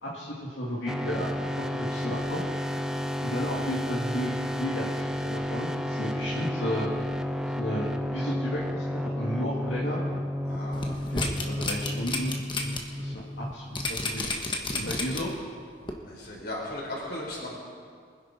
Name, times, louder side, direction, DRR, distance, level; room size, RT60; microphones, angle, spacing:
voice 1, 0.0-1.3 1.6-2.4 3.2-6.9 7.6-8.8 9.1-10.0 11.1-12.3 12.6-14.4 14.7-15.3, equal, 75° left, -7 dB, 2.3 m, -33 dB
sound 1, 0.9-14.4, equal, 5° right, 0.5 m, -32 dB
voice 2, 10.5-11.1 16.1-17.5, left 1 dB, 55° left, -4 dB, 5.0 m, -37 dB
sound 2, 10.7-12.8 13.2-13.3 13.8-15.4 15.9-16.0, left 3 dB, 25° left, 1.3 m, -31 dB
24.0 x 10.5 x 4.3 m, 2.1 s
head